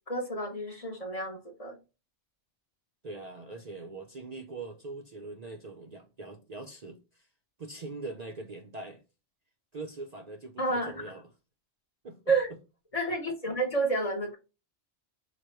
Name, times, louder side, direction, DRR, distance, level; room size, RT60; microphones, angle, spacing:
voice 1, 0.1-1.8 10.6-11.1 12.3-12.5 12.9-14.4, right 2 dB, 35° left, 0.8 m, -30 dB
voice 2, 3.0-7.3 7.6-9.0 9.7-11.3 12.0-12.3, right 3 dB, 45° right, 0.6 m, -42 dB
4.9 x 2.2 x 4.3 m
omnidirectional pair, 1.2 m